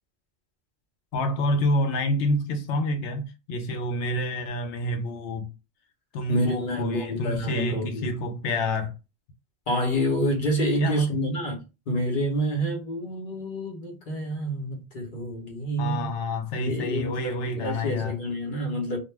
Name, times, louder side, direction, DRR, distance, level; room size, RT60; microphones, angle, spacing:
voice 1, 1.1-5.5 6.1-9.0 10.8-11.2 15.8-18.2, left 1 dB, 85° left, 1.0 m, -28 dB
voice 2, 6.3-8.1 9.7-16.1 16.6-19.0, equal, 50° left, 1.0 m, -28 dB
2.4 x 2.2 x 3.2 m
omnidirectional pair, 1.1 m